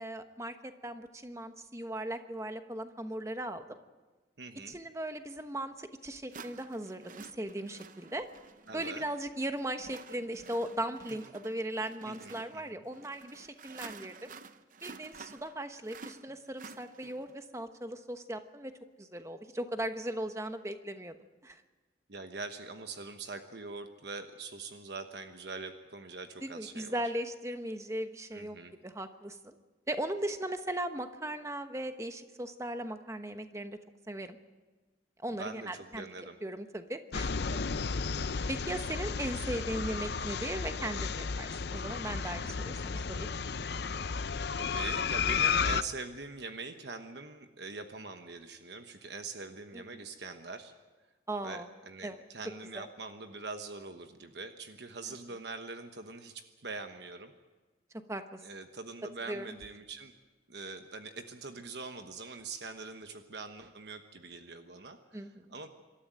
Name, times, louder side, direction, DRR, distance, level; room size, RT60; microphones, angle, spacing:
voice 1, 0.0-3.6 4.7-8.3 8.7-14.3 14.8-18.7 19.0-21.2 21.4-21.6 26.4-28.6 28.8-29.6 29.9-33.8 34.1-34.4 35.2-37.4 38.2-43.3 49.7-50.0 51.3-51.7 52.0-52.2 52.7-52.9 58.1-58.4 59.3-59.5 65.1-65.5, right 1 dB, 15° right, 8 dB, 1.1 m, -38 dB
voice 2, 4.4-4.8 8.7-9.0 12.0-12.8 22.1-27.0 28.3-28.7 35.3-36.4 37.7-38.1 44.6-50.7 51.4-57.3 58.4-60.1 60.5-65.7, right 3 dB, 60° right, 7 dB, 1.2 m, -43 dB
sound 1, 5.4-5.5 6.3-17.4, right 4 dB, 45° right, 0.7 m, -51 dB
sound 2, 37.1-45.8, left 5 dB, 60° left, 0.6 m, -33 dB
25.5 x 13.0 x 9.1 m, 1.3 s
head